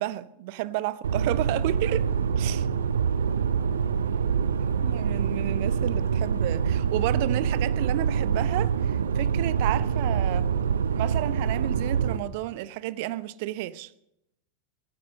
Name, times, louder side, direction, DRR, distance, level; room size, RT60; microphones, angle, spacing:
voice 1, 0.0-2.1 2.4-2.7 4.8-10.5 10.9-13.9, right 15 dB, 50° right, 0.8 m, -31 dB
sound 1, 1.0-12.2, right 7 dB, 65° right, 1.1 m, -25 dB
22.0 x 9.5 x 6.4 m
figure-of-eight pair, 90°, 0 cm